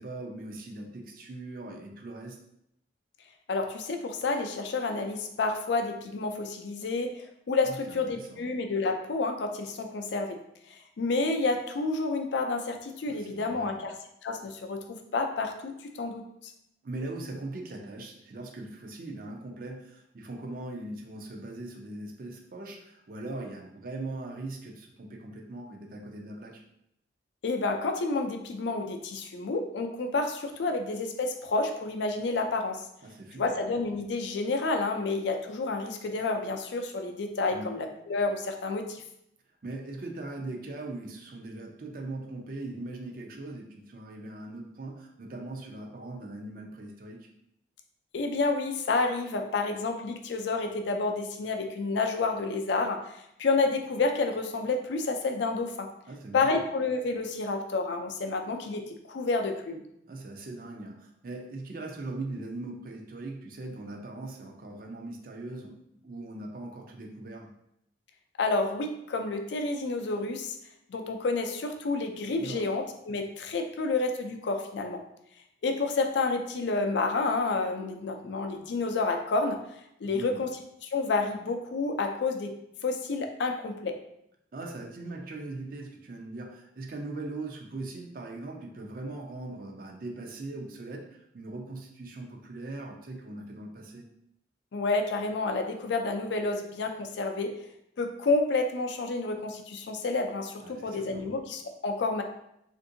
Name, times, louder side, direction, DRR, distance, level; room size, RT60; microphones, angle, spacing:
voice 1, 0.0-2.4 7.6-8.5 13.1-13.8 16.8-26.6 33.0-33.6 37.5-37.8 39.6-47.3 56.1-56.6 60.1-65.8 66.0-67.5 72.4-72.7 80.0-80.5 84.5-94.1 100.6-101.3, right 2 dB, 50° right, 2 dB, 0.4 m, -40 dB
voice 2, 3.5-10.4 10.7-13.9 14.2-14.9 15.1-16.2 27.4-32.8 33.4-39.0 48.1-55.9 56.3-59.8 68.4-70.5 70.9-75.0 75.6-79.6 80.0-80.5 80.9-82.5 82.8-84.0 94.7-97.6 98.0-102.2, left 3 dB, 70° left, 4 dB, 0.4 m, -29 dB
3.5 x 2.6 x 2.6 m, 0.79 s
head